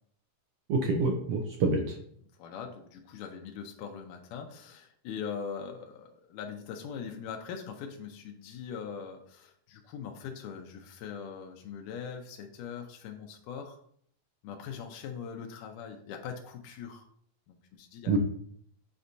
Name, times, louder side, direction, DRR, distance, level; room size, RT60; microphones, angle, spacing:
voice 1, 0.7-2.0 18.1-18.2, right 3 dB, 80° right, 2 dB, 1.4 m, -27 dB
voice 2, 2.4-13.8 14.4-17.1 17.5-18.2, left 7 dB, 90° left, 3 dB, 2.2 m, -41 dB
8.2 x 4.3 x 2.7 m, 0.64 s
omnidirectional pair, 3.6 m